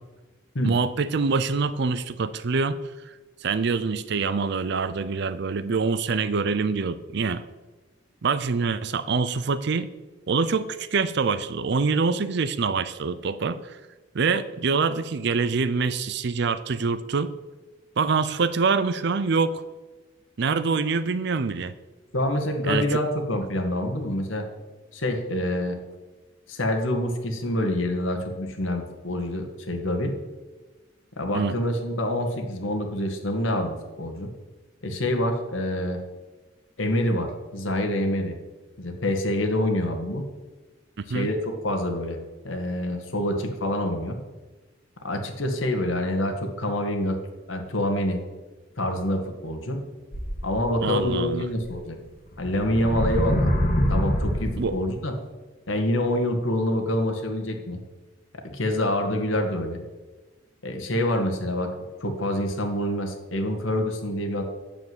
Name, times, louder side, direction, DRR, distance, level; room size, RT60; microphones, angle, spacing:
voice 1, 0.6-2.8 3.4-7.4 8.2-9.9 10.3-13.8 14.1-17.3 18.0-19.6 20.4-21.7 22.6-23.0 31.3-31.5 41.0-41.3 50.8-51.5 54.6-54.7, right 4 dB, 60° right, 14 dB, 0.5 m, -25 dB
voice 2, 22.1-24.5 24.9-25.8 26.5-30.1 31.2-34.3 34.8-36.0 36.8-38.4 38.8-40.2 41.1-42.2 42.4-44.2 45.0-47.2 47.5-48.2 48.8-49.8 50.4-52.0 52.4-53.5 53.9-55.1 55.7-57.8 58.5-59.8 60.6-61.7 62.0-64.4, left 1 dB, 85° left, 4 dB, 1.9 m, -26 dB
sound 1, 50.1-51.1 51.7-51.8 52.3-54.8, equal, 45° left, 1.6 m, -25 dB
9.1 x 7.3 x 7.9 m, 1.2 s
head